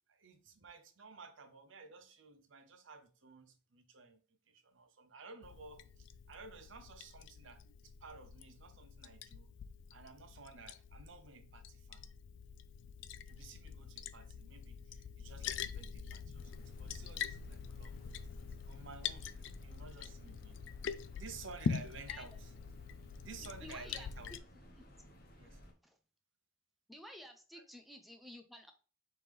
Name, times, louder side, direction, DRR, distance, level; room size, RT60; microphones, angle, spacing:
voice 1, 0.1-4.2 4.5-9.5 9.9-12.0 13.3-18.3 18.7-20.6 21.1-22.5 23.2-24.3 25.4-25.6, right 4 dB, 75° right, 0.7 m, -54 dB
Liquid, 5.4-24.4, left 7 dB, 70° left, 0.3 m, -45 dB
sound 1, 16.4-25.7, equal, 50° left, 0.9 m, -58 dB
voice 2, 23.4-24.1 24.7-24.8 25.8-26.0 26.9-28.7, left 1 dB, ahead, 0.5 m, -52 dB
4.3 x 3.4 x 3.5 m
head